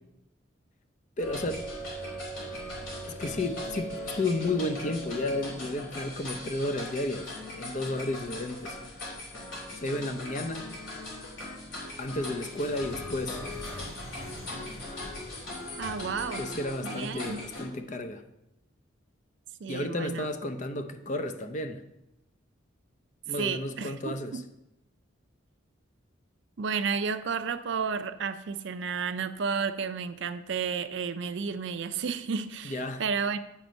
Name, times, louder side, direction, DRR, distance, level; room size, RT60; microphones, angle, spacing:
sound 1, 1.2-17.6, left 1 dB, 75° left, 3.0 m, -39 dB
voice 1, 1.2-1.6 3.1-8.8 9.7-10.7 12.0-13.4 16.4-18.2 19.7-21.8 23.3-24.4 32.6-33.0, left 2 dB, 40° left, 0.6 m, -32 dB
voice 2, 15.8-16.4 16.8-17.5 19.6-20.3 23.4-24.4 26.6-33.4, right 5 dB, 65° right, 0.4 m, -32 dB
9.3 x 4.3 x 5.1 m
head